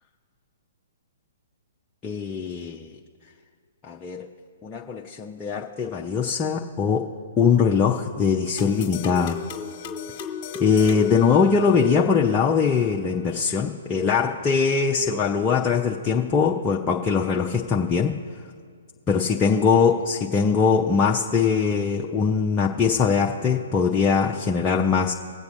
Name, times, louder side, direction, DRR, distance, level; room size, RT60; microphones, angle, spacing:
voice 1, 2.0-2.9 3.8-4.3 4.6-9.4 10.6-18.2 19.1-25.1, left 6 dB, 20° left, -1 dB, 0.6 m, -22 dB
sound 1, 8.6-12.0, left 7 dB, 35° left, 1.4 m, -36 dB
20.5 x 8.1 x 2.7 m, 2.1 s
figure-of-eight pair, 120°, 0 cm